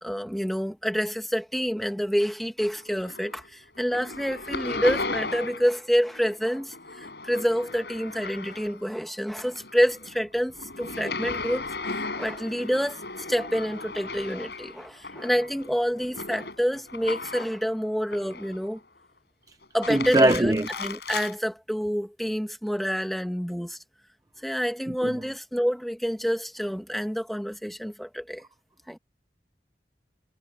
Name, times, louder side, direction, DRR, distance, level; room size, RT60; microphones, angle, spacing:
voice 1, 0.0-13.0 13.3-18.8 19.7-23.8 24.4-28.4 28.9-29.0, equal, ahead, 2.0 m, -28 dB
sound 1, 2.8-3.5 3.8-5.8 6.1-8.9 9.3-17.6 18.1-18.8 19.6-21.3, left 3 dB, 70° left, 6.4 m, -36 dB
voice 2, 19.9-20.7 24.9-25.1, right 1 dB, 20° right, 0.5 m, -21 dB
head